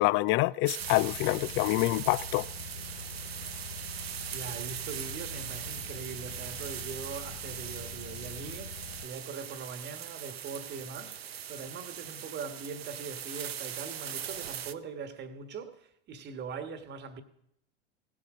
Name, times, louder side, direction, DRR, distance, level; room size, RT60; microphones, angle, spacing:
voice 1, 0.0-2.5, left 20 dB, 40° left, 0.4 m, -26 dB
sound 1, 0.7-14.7, right 9 dB, 85° right, 0.6 m, -40 dB
Car, 0.8-9.0, left 5 dB, 80° left, 1.2 m, -45 dB
voice 2, 4.3-17.2, right 5 dB, 35° right, 1.4 m, -42 dB
17.5 x 7.6 x 5.0 m
hypercardioid pair, 85°, 30 cm